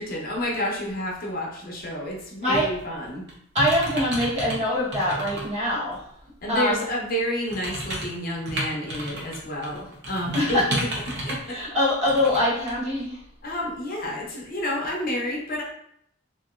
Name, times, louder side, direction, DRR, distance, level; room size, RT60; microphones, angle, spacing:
voice 1, 0.0-3.2 6.4-11.6 13.4-15.6, equal, 45° left, -2 dB, 0.6 m, -30 dB
voice 2, 2.4-2.7 3.5-6.1 6.5-6.8 10.3-10.7 11.5-13.2, left 1 dB, 35° right, -8 dB, 1.1 m, -24 dB
sound 1, 2.5-2.8 3.3-4.6 4.9-5.4 5.9-6.0 7.5-9.4 9.6-11.5 12.1-12.4 12.7-12.8, right 1 dB, 55° right, 0.7 m, -31 dB
2.8 x 2.5 x 2.4 m, 0.71 s
head